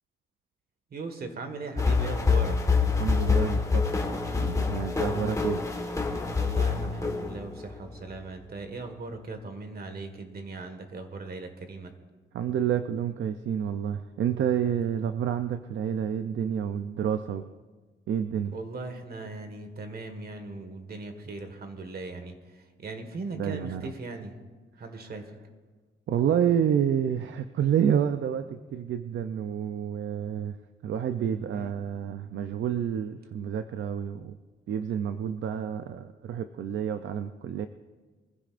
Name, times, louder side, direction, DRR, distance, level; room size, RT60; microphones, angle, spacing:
voice 1, 0.9-2.6 5.0-5.1 6.3-11.9 18.5-24.4 24.8-25.3 31.5-31.7, right 3 dB, 50° right, 6 dB, 1.7 m, -39 dB
sound 1, 1.8-7.7, left 4 dB, 15° left, 1.5 m, -26 dB
voice 2, 3.0-3.9 4.4-5.6 12.3-17.5 18.1-18.5 23.3-23.9 26.1-30.6 30.8-34.4 34.7-37.7, right 9 dB, 70° right, 9 dB, 0.6 m, -29 dB
24.0 x 15.0 x 2.5 m, 1.4 s
wide cardioid pair, 135°, 21 cm